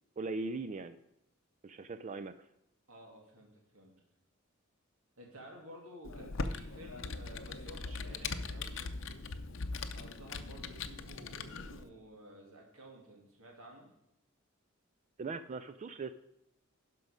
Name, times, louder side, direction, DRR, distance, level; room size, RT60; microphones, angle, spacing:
voice 1, 0.2-1.0 1.6-2.4 15.2-16.2, right 3 dB, 35° right, 11 dB, 0.3 m, -39 dB
voice 2, 2.9-3.9 5.2-9.2 9.9-13.9, right 1 dB, 85° right, -1 dB, 2.5 m, -53 dB
Computer keyboard, 6.0-11.8, left 4 dB, 65° left, 0.7 m, -40 dB
12.0 x 5.4 x 5.0 m, 0.86 s
head